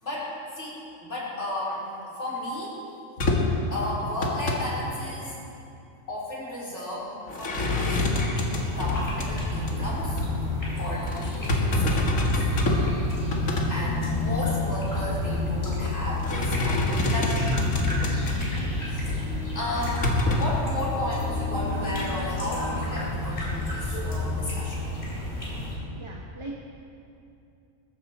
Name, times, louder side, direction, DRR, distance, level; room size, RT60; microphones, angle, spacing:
voice 1, 0.0-1.9 2.2-2.8 3.7-5.4 6.1-10.2 10.8-12.5 13.7-17.5 18.9-19.1 19.5-24.9, left 1 dB, 60° left, -6 dB, 4.3 m, -34 dB
sound 1, 3.2-3.6 4.0-4.6 7.3-9.3 9.7-9.9 10.2-10.3 11.1-12.9 13.2-13.7 14.2-14.3 15.6-15.9 16.2-18.6 19.1-19.2 19.8-20.5, left 2 dB, 85° left, 2.1 m, -26 dB
sound 2, 8.5-25.7, left 2 dB, 40° left, 3.8 m, -30 dB
voice 2, 26.0-26.5, right 2 dB, 25° right, -2 dB, 1.3 m, -39 dB
20.5 x 14.0 x 4.3 m, 2.7 s
omnidirectional pair, 1.4 m